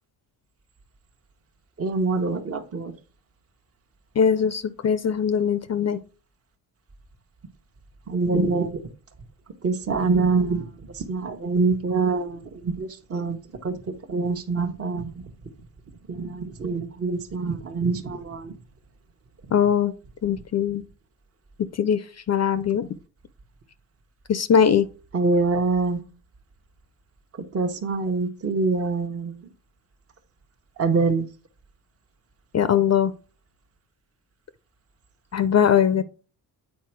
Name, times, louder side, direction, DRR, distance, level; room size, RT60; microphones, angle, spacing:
voice 1, 1.8-2.9 8.1-8.8 9.6-13.4 13.6-13.8 14.1-15.2 16.1-18.5 25.1-26.0 27.5-29.5 30.8-31.3, right 4 dB, 35° right, 1.1 m, -25 dB
voice 2, 4.2-6.0 19.5-19.9 20.2-20.8 21.7-22.9 24.3-24.9 32.5-33.1 35.3-36.0, left 8 dB, 40° left, 0.6 m, -21 dB
8.5 x 4.3 x 4.5 m
cardioid pair, 105°, 40 cm